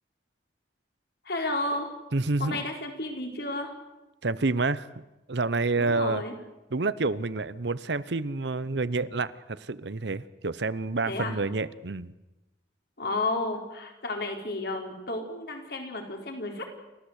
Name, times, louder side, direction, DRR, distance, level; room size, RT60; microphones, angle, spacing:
voice 1, 1.2-1.9 2.4-3.7 5.8-6.3 11.0-11.3 13.0-16.7, left 2 dB, 60° left, 3 dB, 4.3 m, -32 dB
voice 2, 2.1-2.6 4.2-5.0 5.3-6.2 6.7-12.1, right 3 dB, 65° right, 16 dB, 0.9 m, -28 dB
29.5 x 14.5 x 8.2 m, 1.0 s
head